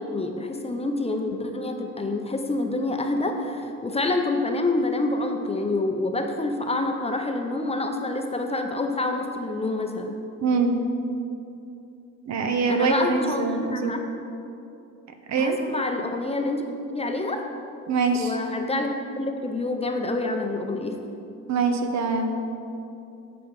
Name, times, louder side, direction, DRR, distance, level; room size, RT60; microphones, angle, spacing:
voice 1, 0.0-10.2 12.7-14.1 15.4-17.4 18.1-21.0, left 2 dB, 20° left, 4 dB, 0.6 m, -27 dB
voice 2, 10.4-10.8 12.3-13.9 15.3-15.6 17.9-18.4 21.5-22.3, right 4 dB, 65° right, 5 dB, 0.8 m, -24 dB
8.0 x 5.0 x 4.7 m, 2.7 s
cardioid pair, 90°, 30 cm